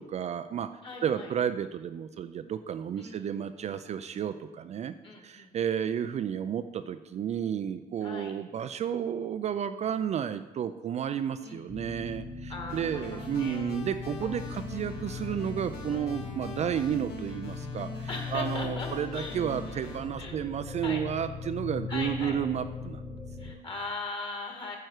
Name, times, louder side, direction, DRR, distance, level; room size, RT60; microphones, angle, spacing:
voice 1, 0.0-23.1 23.4-23.5, right 9 dB, 40° right, 10 dB, 0.4 m, -32 dB
voice 2, 0.8-1.3 3.0-3.3 5.0-5.6 8.0-8.3 11.4-11.7 12.5-13.6 18.1-18.9 19.1-19.9 20.2-20.4 20.8-21.0 21.9-22.4 23.4-24.8, left 3 dB, 30° left, 2 dB, 2.0 m, -39 dB
sound 1, 11.7-23.5, left 5 dB, 10° left, 1.4 m, -39 dB
sound 2, 12.7-20.0, left 2 dB, 75° left, 2.0 m, -43 dB
9.1 x 7.6 x 4.8 m, 1.1 s
cardioid pair, 110°, 17 cm